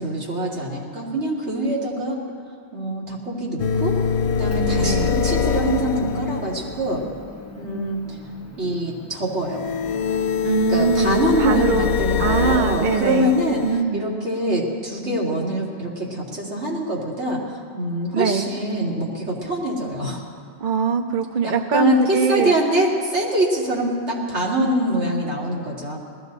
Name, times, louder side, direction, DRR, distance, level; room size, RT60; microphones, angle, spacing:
voice 1, 0.0-2.2 2.7-4.0 4.4-7.0 7.6-8.2 8.6-9.7 10.7-13.6 13.9-20.2 21.4-26.0, right 1 dB, 75° right, -4 dB, 2.8 m, -24 dB
sound 1, 3.6-7.1 9.4-13.8, left 6 dB, 70° left, 0.9 m, -24 dB
Motor vehicle (road) / Engine, 4.5-10.9, left 1 dB, 15° left, 1.0 m, -41 dB
voice 2, 4.8-5.2 10.4-11.9 12.2-13.3 13.6-14.1 18.1-18.5 20.6-22.5, right 6 dB, 50° right, 7 dB, 0.7 m, -22 dB
20.0 x 15.0 x 4.0 m, 2.3 s
omnidirectional pair, 1.2 m